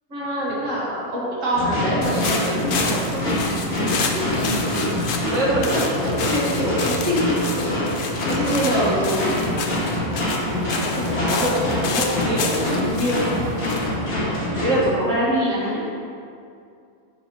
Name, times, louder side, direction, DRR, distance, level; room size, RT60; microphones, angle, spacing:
voice 1, 0.1-5.0 5.3-9.7 10.4-13.4 14.1-15.8, right 1 dB, 60° right, -7 dB, 1.9 m, -25 dB
sound 1, 1.5-14.9, left 1 dB, 40° left, 1.7 m, -25 dB
sound 2, 2.0-14.8, left 5 dB, 75° left, 0.4 m, -31 dB
9.8 x 3.9 x 3.0 m, 2.4 s
omnidirectional pair, 1.5 m